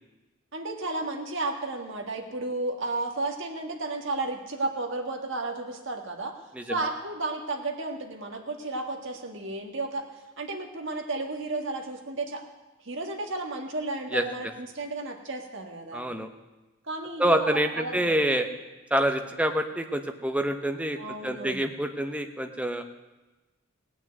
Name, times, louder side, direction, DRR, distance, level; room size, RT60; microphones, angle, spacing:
voice 1, 0.5-6.3 6.7-12.4 12.8-16.0 16.8-18.2 21.0-21.6, right 2 dB, 60° right, 3 dB, 1.8 m, -33 dB
voice 2, 15.9-16.3 17.2-18.5 18.9-22.8, right 1 dB, 5° right, 5 dB, 0.9 m, -27 dB
17.0 x 6.2 x 9.2 m, 1.1 s
head